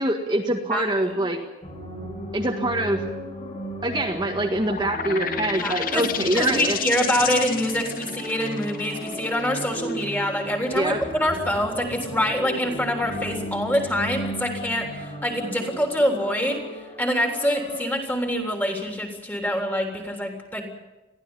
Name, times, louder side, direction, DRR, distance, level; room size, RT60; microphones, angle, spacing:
voice 1, 0.0-1.4 2.3-3.0 3.8-6.8 10.7-11.0, right 1 dB, 25° right, 1 dB, 1.7 m, -24 dB
voice 2, 0.7-1.3 5.5-6.1 6.3-16.6 17.0-20.7, equal, 10° left, 2 dB, 3.6 m, -25 dB
sound 1, 1.6-17.9, equal, 30° left, 6.1 m, -35 dB
sound 2, 4.7-12.0, left 9 dB, 50° left, 1.0 m, -32 dB
22.0 x 15.0 x 9.9 m, 1.0 s
head